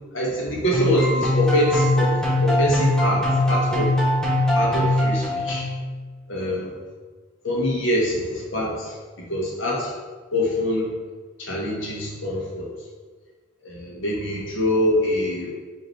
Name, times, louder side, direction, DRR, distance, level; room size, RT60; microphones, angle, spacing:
voice 1, 0.1-2.1 2.4-4.0 4.5-5.6 6.3-6.7 7.4-9.9 10.3-10.9 11.4-12.7 13.6-15.5, left 1 dB, 70° left, -3 dB, 1.1 m, -24 dB
sound 1, 0.7-5.9, left 1 dB, 5° left, 0.7 m, -21 dB
5.2 x 2.9 x 3.1 m, 1.4 s
head